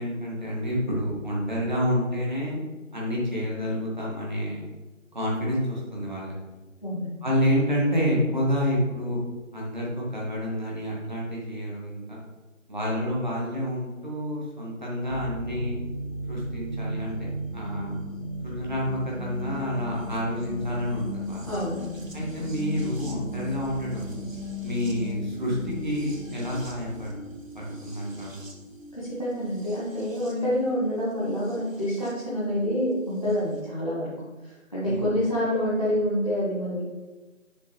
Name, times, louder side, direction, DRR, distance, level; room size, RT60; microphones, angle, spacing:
voice 1, 0.0-2.6 2.9-4.6 5.1-6.3 7.2-9.2 9.5-12.2 12.7-15.8 16.3-17.1 17.5-18.0 18.4-21.5 22.1-24.2 24.6-27.1 27.5-28.4 34.8-35.1, equal, 35° right, -4 dB, 1.5 m, -28 dB
voice 2, 6.8-7.1 21.4-22.0 29.0-34.2 34.7-36.9, equal, 25° left, -9 dB, 1.1 m, -27 dB
sound 1, 15.1-32.1 33.3-33.4, left 1 dB, 75° right, 1.2 m, -37 dB
6.9 x 5.0 x 3.1 m, 1.2 s
figure-of-eight pair, 165°, 40 cm